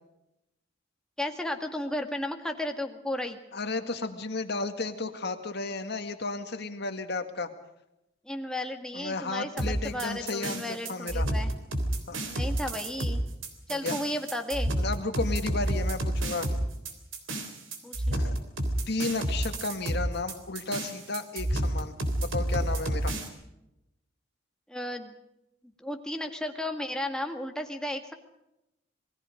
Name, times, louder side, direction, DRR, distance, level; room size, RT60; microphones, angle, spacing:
voice 1, 1.2-3.4 8.3-11.5 12.3-13.2 13.7-14.7 17.8-18.3 24.7-25.2 25.8-28.1, left 1 dB, 5° left, 4 dB, 1.9 m, -34 dB
voice 2, 3.5-7.5 8.9-11.3 12.1-12.2 13.7-14.0 14.8-16.5 18.1-18.4 18.9-23.1, left 3 dB, 55° left, 7 dB, 2.0 m, -33 dB
sound 1, 9.6-23.3, right 1 dB, 75° right, 3.5 m, -30 dB
28.0 x 20.0 x 5.2 m, 0.87 s
head